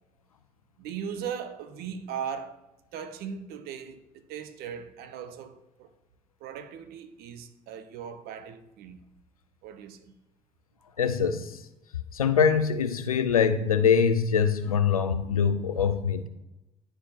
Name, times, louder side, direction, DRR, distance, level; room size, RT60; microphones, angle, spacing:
voice 1, 0.8-2.6 2.9-5.9 6.4-9.1 9.6-10.1, right 7 dB, 60° right, 0.8 m, -38 dB
voice 2, 11.0-11.7 12.1-16.3, left 6 dB, 90° left, 0.4 m, -24 dB
10.0 x 4.8 x 2.9 m
figure-of-eight pair, 55°, 18 cm